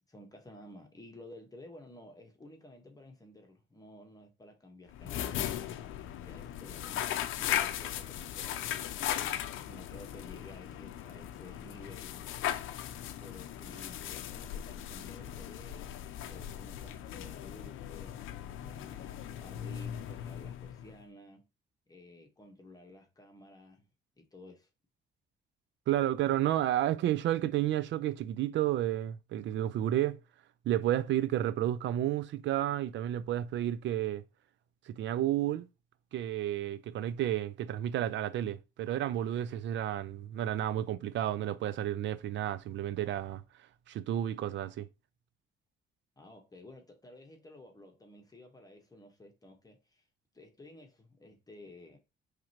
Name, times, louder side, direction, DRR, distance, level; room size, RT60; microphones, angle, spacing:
voice 1, 0.1-9.1 9.6-12.2 13.2-16.0 16.3-18.2 18.6-21.4 21.9-23.9 24.2-24.7 46.2-50.1 50.3-52.0, left 1 dB, 20° left, 1.2 m, -53 dB
sound 1, 4.9-21.0, left 11 dB, 85° left, 0.5 m, -38 dB
voice 2, 25.9-30.2 30.7-34.2 34.9-35.7 36.1-43.4 43.9-44.9, right 12 dB, 70° right, 0.4 m, -31 dB
4.8 x 3.2 x 2.9 m
cardioid pair, 90°, 20 cm